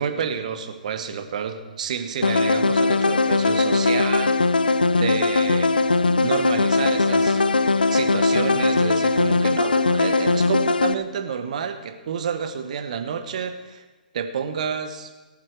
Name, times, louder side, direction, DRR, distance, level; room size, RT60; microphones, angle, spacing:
voice 1, 0.0-4.4 5.0-5.7 6.2-7.5 7.9-13.8 14.1-15.1, right 7 dB, 55° right, 8 dB, 1.4 m, -29 dB
sound 1, 2.2-10.9, left 3 dB, 80° left, 0.6 m, -20 dB
18.5 x 8.4 x 4.9 m, 1.3 s
figure-of-eight pair, 125°, 5 cm